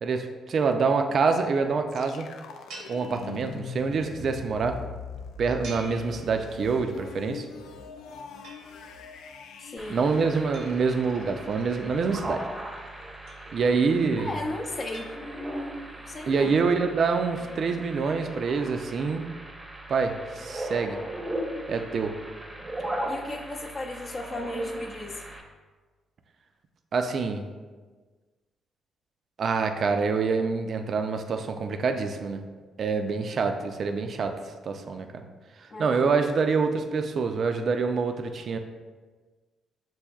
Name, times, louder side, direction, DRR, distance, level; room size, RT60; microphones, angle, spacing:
voice 1, 0.0-2.3 2.9-4.8 5.4-7.5 9.9-12.5 13.5-14.4 16.3-19.2 19.9-21.0 21.7-22.1 26.9-27.5 29.4-32.4 32.8-34.4 34.6-35.1 35.8-38.6, right 4 dB, 55° right, 6 dB, 0.3 m, -26 dB
sound 1, 1.9-11.7, left 5 dB, 80° left, 0.3 m, -42 dB
sound 2, 2.7-3.9 5.6-6.9 8.4-9.2 10.5-11.7 13.3-14.0 14.9-15.8, right 3 dB, 85° right, 0.8 m, -48 dB
voice 2, 9.6-10.0 14.2-15.1 16.1-16.5 23.1-25.2 35.7-36.1, left 1 dB, 40° left, 1 dB, 0.6 m, -35 dB
sound 3, 9.8-25.4, right 1 dB, 20° right, 0.7 m, -38 dB
6.9 x 2.6 x 2.3 m, 1.4 s
cardioid pair, 90°, 0 cm